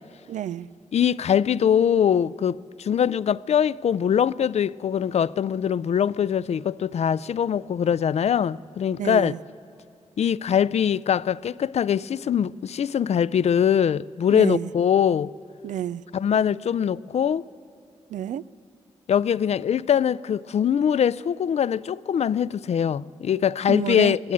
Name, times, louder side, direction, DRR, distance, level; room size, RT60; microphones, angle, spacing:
voice 1, 0.3-0.7 9.0-9.4 14.3-14.7 15.6-16.0 18.1-18.4 23.7-24.2, right 10 dB, 90° right, 0.4 m, -29 dB
voice 2, 0.9-9.3 10.2-15.3 16.1-17.4 19.1-24.3, left 8 dB, 60° left, 0.4 m, -22 dB
19.0 x 16.5 x 8.7 m
cardioid pair, 80°, 12 cm